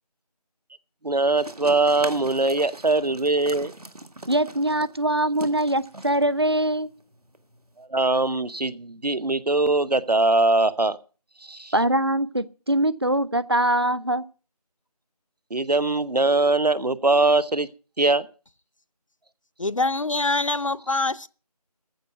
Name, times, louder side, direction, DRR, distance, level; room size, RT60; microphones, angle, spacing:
voice 1, 1.0-3.7 7.8-11.0 11.4-11.7 15.5-17.7 18.0-18.3, right 2 dB, 90° right, 1.1 m, -22 dB
sound 1, 1.4-7.8, right 1 dB, 70° right, 2.0 m, -41 dB
voice 2, 4.3-6.9 11.7-14.2, right 1 dB, 40° right, 0.5 m, -23 dB
voice 3, 19.6-21.3, left 2 dB, 55° left, 0.6 m, -24 dB
14.5 x 5.4 x 9.1 m
figure-of-eight pair, 175°, 20 cm